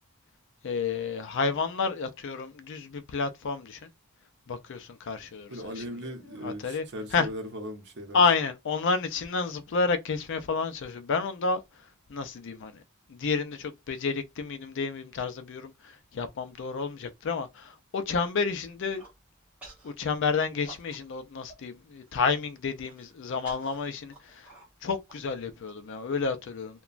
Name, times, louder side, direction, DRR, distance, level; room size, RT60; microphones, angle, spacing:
voice 1, 0.6-3.9 4.5-5.8 6.4-6.8 7.1-7.3 8.1-11.6 12.1-12.8 13.1-19.0 19.8-24.5 24.8-26.8, left 4 dB, 55° left, 0.4 m, -30 dB
voice 2, 5.5-8.2, equal, 55° right, 0.8 m, -38 dB
Human voice, 18.8-19.2 19.6-19.9 20.3-21.2 21.5-21.6 22.0-22.3 22.8-25.7, right 2 dB, 5° right, 1.5 m, -51 dB
2.9 x 2.2 x 2.4 m
head